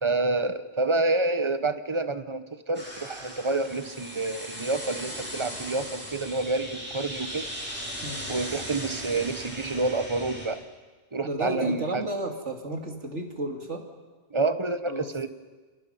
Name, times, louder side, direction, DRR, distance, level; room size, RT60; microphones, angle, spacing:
voice 1, 0.0-7.5 8.3-10.6 11.1-12.1 14.3-15.3, right 3 dB, 25° right, 11 dB, 1.0 m, -28 dB
sound 1, 2.7-10.5, equal, 10° right, 7.2 m, -38 dB
voice 2, 8.0-8.3 11.2-13.8 14.9-15.3, right 2 dB, 65° right, 3 dB, 3.0 m, -33 dB
28.5 x 27.5 x 5.7 m, 1.3 s
omnidirectional pair, 1.3 m